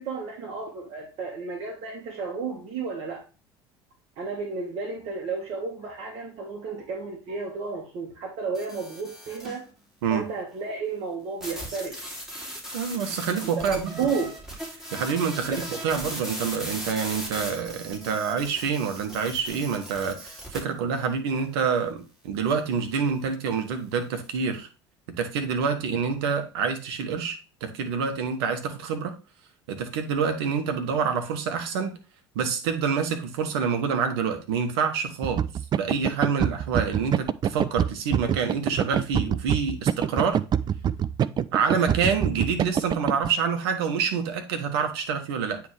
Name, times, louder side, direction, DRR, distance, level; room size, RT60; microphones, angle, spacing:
voice 1, 0.0-3.2 4.2-9.6 10.1-12.0 13.6-14.3 15.5-15.6, right 4 dB, 50° right, -1 dB, 1.4 m, -32 dB
sound 1, 8.5-9.6 11.4-20.6, equal, 5° right, 2.9 m, -38 dB
voice 2, 12.7-13.9 14.9-24.7 25.2-29.1 29.7-32.0 32.3-35.5 35.8-40.4 41.5-45.6, right 6 dB, 70° right, 7 dB, 1.1 m, -27 dB
sound 2, 35.2-43.3, right 9 dB, 30° right, 0.4 m, -25 dB
9.2 x 3.5 x 3.2 m, 0.32 s
hypercardioid pair, 70°, 14 cm